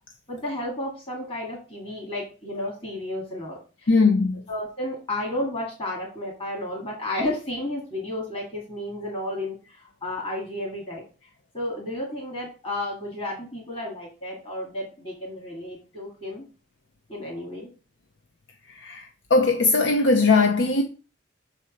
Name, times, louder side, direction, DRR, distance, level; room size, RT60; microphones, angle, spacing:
voice 1, 0.3-3.9 4.5-11.0 11.5-16.4 17.1-17.7, left 1 dB, 30° left, 2.1 m, -32 dB
voice 2, 3.9-4.4 18.8-19.0 19.3-20.8, left 3 dB, 90° left, 0.8 m, -19 dB
6.4 x 4.3 x 6.4 m
head